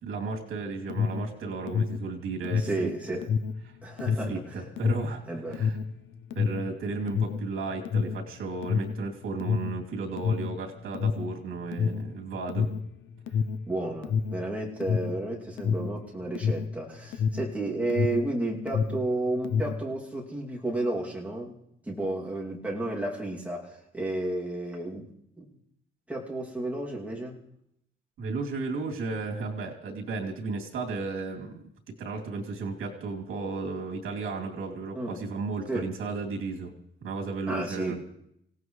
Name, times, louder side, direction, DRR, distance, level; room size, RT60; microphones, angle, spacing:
voice 1, 0.0-3.2 4.1-5.2 5.5-5.8 6.3-12.7 28.2-31.6 32.0-36.7 37.0-38.0, right 3 dB, 85° right, 1 dB, 3.0 m, -34 dB
Alarm, 0.7-18.4 18.6-19.9, left 6 dB, 65° left, 0.7 m, -29 dB
voice 2, 2.6-3.3 3.8-4.6 5.2-5.7 13.7-21.5 21.8-25.1 25.4-25.5 26.1-27.4 34.9-35.2 35.7-35.9 37.5-38.0, right 2 dB, 5° right, -4 dB, 2.5 m, -32 dB
25.5 x 17.5 x 3.2 m, 0.75 s
cardioid pair, 175°, 21 cm